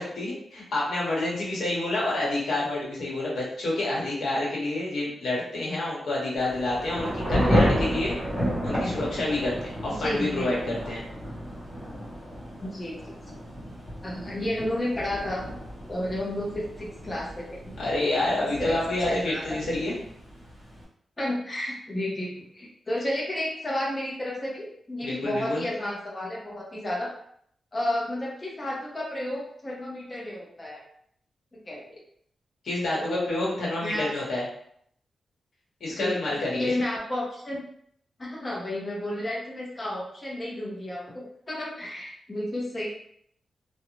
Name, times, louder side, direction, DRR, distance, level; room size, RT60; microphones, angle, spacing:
voice 1, 0.0-8.2 8.6-11.0 17.8-20.0 25.0-25.6 32.6-34.4 35.8-36.7, left 2 dB, 70° left, -5 dB, 0.9 m, -28 dB
Thunder / Rain, 6.4-20.8, equal, 30° right, 1.0 m, -31 dB
voice 2, 10.0-10.5 12.6-13.2 14.0-15.5 15.9-17.6 18.6-18.7 19.1-19.4 21.2-27.1 27.7-30.8 31.5-31.8 33.0-33.4 33.8-34.1 35.9-37.6 38.2-42.9, left 1 dB, 20° left, -4 dB, 0.6 m, -32 dB
2.4 x 2.0 x 3.0 m, 0.67 s
wide cardioid pair, 175°, 0 cm